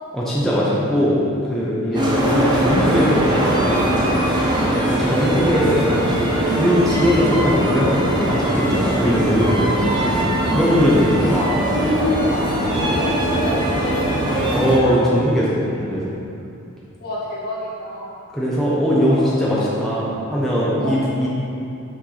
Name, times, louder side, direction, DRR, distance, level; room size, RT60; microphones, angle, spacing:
voice 1, 0.1-1.2 1.4-4.0 4.6-9.9 10.5-11.6 14.5-16.2 18.3-21.3, equal, ahead, -8 dB, 0.9 m, -20 dB
sound 1, 1.9-14.8, right 1 dB, 20° right, 1.0 m, -21 dB
voice 2, 9.8-10.1 10.4-10.7 11.6-14.9 17.0-18.1 19.0-19.2 19.5-19.7 20.8-20.9, left 1 dB, 50° left, -6 dB, 1.7 m, -28 dB
5.9 x 4.4 x 5.7 m, 2.7 s
head